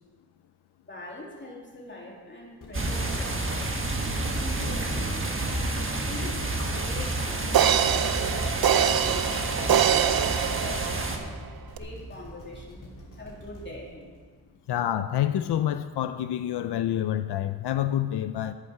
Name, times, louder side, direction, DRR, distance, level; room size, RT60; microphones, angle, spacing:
voice 1, 0.8-3.7 4.4-5.4 6.0-11.4 11.7-12.8 13.2-14.1, left 2 dB, 30° left, -3 dB, 2.7 m, -43 dB
sound 1, 2.6-14.8 15.3-15.4, equal, 50° left, 2.7 m, -45 dB
sound 2, 2.7-11.2, right 2 dB, 30° right, 1.3 m, -29 dB
sound 3, 6.8-6.9 7.5-11.3 11.8-11.9, right 9 dB, 65° right, 0.6 m, -24 dB
voice 2, 14.7-18.5, left 11 dB, 85° left, 10 dB, 0.5 m, -27 dB
11.5 x 9.2 x 5.7 m, 1.5 s
wide cardioid pair, 115°, 39 cm